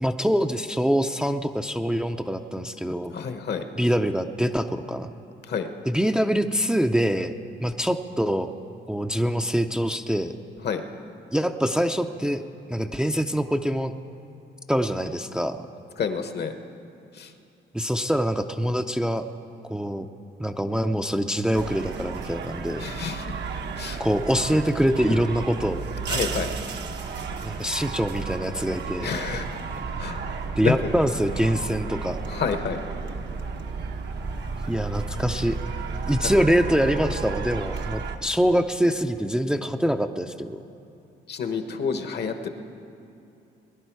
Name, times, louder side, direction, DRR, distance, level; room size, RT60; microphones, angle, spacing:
voice 1, 0.0-3.2 3.8-5.1 5.9-8.5 8.9-10.3 11.3-12.4 12.7-13.9 14.7-15.6 17.7-19.2 19.7-20.1 20.4-22.9 24.0-25.8 27.4-29.1 30.6-32.2 34.7-35.6 36.1-40.6, equal, 5° right, 6 dB, 0.5 m, -24 dB
voice 2, 3.1-3.6 5.5-5.7 10.6-10.8 16.0-16.5 17.1-17.3 22.8-23.3 23.8-24.0 26.1-26.8 29.0-29.5 30.0-30.2 30.6-30.7 32.3-32.8 41.3-42.5, left 6 dB, 55° left, 8 dB, 1.1 m, -29 dB
sound 1, 21.5-38.2, right 4 dB, 60° right, 0.9 m, -33 dB
20.5 x 11.0 x 4.7 m, 2.7 s
cardioid pair, 90°, 20 cm